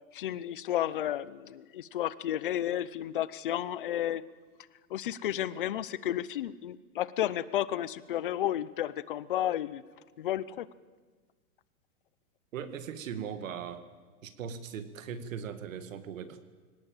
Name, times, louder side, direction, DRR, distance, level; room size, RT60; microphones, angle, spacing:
voice 1, 0.1-4.2 4.9-9.8 10.2-10.7, left 12 dB, 35° left, 18 dB, 0.6 m, -32 dB
voice 2, 12.5-13.9 14.2-16.4, right 7 dB, 55° right, 11 dB, 2.1 m, -39 dB
22.5 x 18.5 x 8.9 m, 1.4 s
hypercardioid pair, 170°, 46 cm